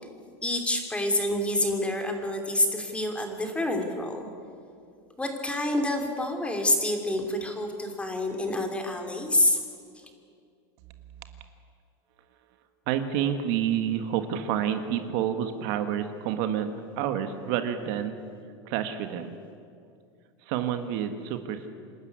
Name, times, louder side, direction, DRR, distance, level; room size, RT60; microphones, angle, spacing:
voice 1, 0.4-4.3 5.2-9.6, left 1 dB, 10° left, 4 dB, 3.0 m, -27 dB
voice 2, 12.9-16.7 17.0-18.2 18.6-19.4 20.4-21.7, right 9 dB, 60° right, 8 dB, 1.6 m, -28 dB
27.5 x 12.5 x 9.5 m, 2.4 s
supercardioid pair, 135°, 14 cm